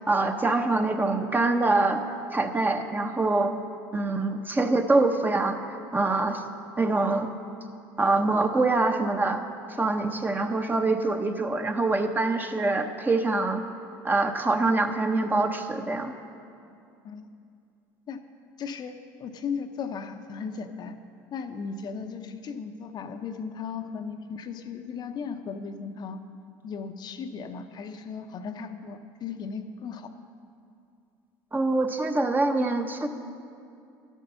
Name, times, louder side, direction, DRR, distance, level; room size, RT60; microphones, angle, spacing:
voice 1, 0.0-2.0 2.3-3.5 3.9-5.6 5.9-6.4 6.8-7.3 8.0-9.4 9.7-13.6 14.0-16.1 31.5-33.1, right 2 dB, 20° right, 6 dB, 0.8 m, -24 dB
voice 2, 18.6-21.0 21.3-26.2 26.6-30.1, left 5 dB, 45° left, 7 dB, 0.7 m, -36 dB
11.5 x 8.2 x 5.5 m, 2.5 s
supercardioid pair, 85°, 10 cm